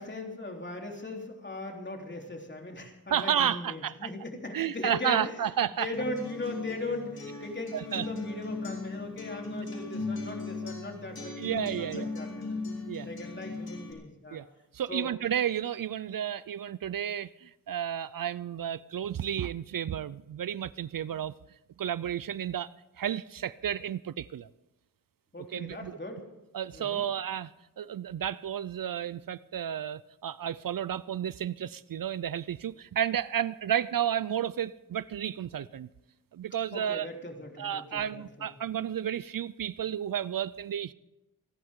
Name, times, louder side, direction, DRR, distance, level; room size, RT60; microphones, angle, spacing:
voice 1, 0.0-5.3 5.8-12.6 13.0-14.4 14.9-15.1 25.3-26.2 26.7-27.0 36.7-38.5, left 2 dB, 30° left, 1 dB, 3.5 m, -39 dB
voice 2, 3.1-4.1 4.5-5.9 7.7-8.1 11.4-12.1 12.9-13.1 14.3-14.4 14.7-21.3 21.8-22.7 23.0-24.5 25.5-26.0 26.5-27.5 27.8-35.9 36.3-37.1 37.6-40.9, right 9 dB, 65° right, 18 dB, 0.5 m, -32 dB
Acoustic guitar, 5.9-13.9, left 3 dB, 80° left, 3.5 m, -38 dB
28.0 x 11.0 x 3.7 m, 0.97 s
wide cardioid pair, 60°, 36 cm